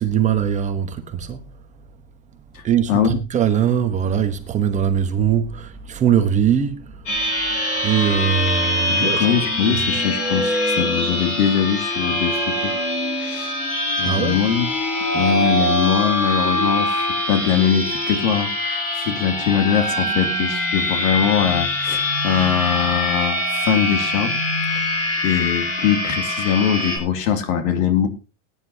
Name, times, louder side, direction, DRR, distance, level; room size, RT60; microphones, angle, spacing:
voice 1, 0.0-1.4 2.6-7.1 7.8-9.5 9.7-9.8 14.0-14.4, right 9 dB, 20° right, 1.1 m, -21 dB
sound 1, 7.1-27.0, left 1 dB, 35° left, 3.9 m, -23 dB
voice 2, 8.9-12.7 13.2-13.5 14.0-14.7 15.1-24.3 24.7-24.9 25.2-28.1, left 8 dB, 75° left, 2.7 m, -22 dB
20.0 x 10.0 x 2.8 m
supercardioid pair, 170°, 41 cm